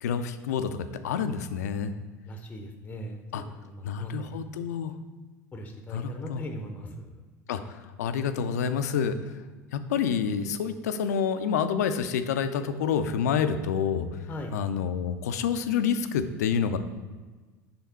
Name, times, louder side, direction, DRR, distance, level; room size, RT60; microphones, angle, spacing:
voice 1, 0.0-0.8 1.0-1.9 3.3-3.4 3.8-5.0 5.9-6.4 7.5-7.6 8.0-9.2 9.7-14.1 14.5-16.8, left 7 dB, 65° left, 10 dB, 0.4 m, -28 dB
voice 2, 2.2-4.4 5.5-7.2 14.3-14.6, equal, 15° left, 4 dB, 0.7 m, -39 dB
6.8 x 3.6 x 4.1 m, 1.3 s
figure-of-eight pair, 75°, 10 cm